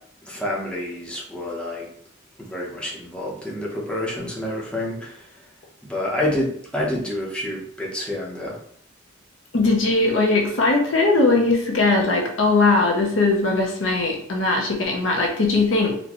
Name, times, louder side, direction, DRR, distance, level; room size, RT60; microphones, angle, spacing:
voice 1, 0.3-1.9 2.4-5.2 5.8-8.6, left 1 dB, 5° left, -4 dB, 0.8 m, -28 dB
voice 2, 9.5-16.0, left 3 dB, 75° left, 0 dB, 0.7 m, -20 dB
4.1 x 2.2 x 2.9 m, 0.64 s
head